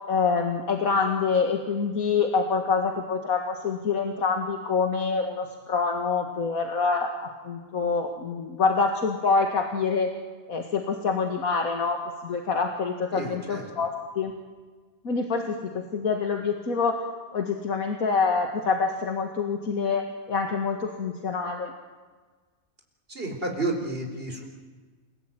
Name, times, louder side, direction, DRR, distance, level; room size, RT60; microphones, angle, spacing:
voice 1, 0.1-10.1 10.5-14.3 15.0-17.0 17.3-21.7, left 5 dB, 75° left, 3 dB, 2.3 m, -26 dB
voice 2, 13.1-13.7 23.1-24.5, right 2 dB, 40° right, 3 dB, 4.5 m, -31 dB
28.5 x 17.5 x 9.2 m, 1.4 s
omnidirectional pair, 1.5 m